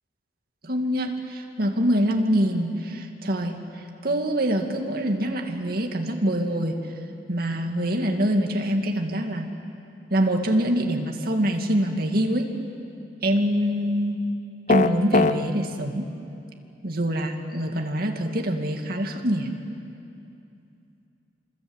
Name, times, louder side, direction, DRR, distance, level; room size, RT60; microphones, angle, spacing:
voice 1, 0.6-6.8 7.3-9.5 10.1-12.6 13.2-14.3 14.7-16.1 16.8-19.6, equal, 60° right, 3 dB, 2.4 m, -25 dB
sound 1, 14.7-15.4, left 3 dB, 45° left, 0.9 m, -19 dB
27.5 x 26.0 x 8.1 m, 2.7 s
head